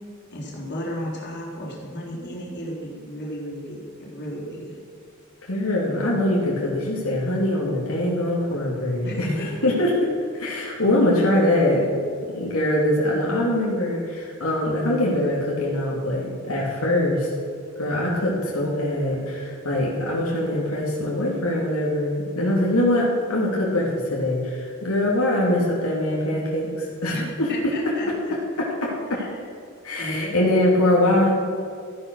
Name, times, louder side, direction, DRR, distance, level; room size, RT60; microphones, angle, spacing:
voice 1, 0.3-4.8 9.0-9.7 27.1-28.1 29.1-29.3 30.0-30.8, equal, 55° left, -3 dB, 3.9 m, -34 dB
voice 2, 5.5-9.9 10.3-11.9 12.3-17.3 17.8-27.5 28.6-29.2 29.8-31.3, left 1 dB, 85° left, -4 dB, 2.9 m, -23 dB
14.0 x 10.0 x 6.4 m, 2.4 s
head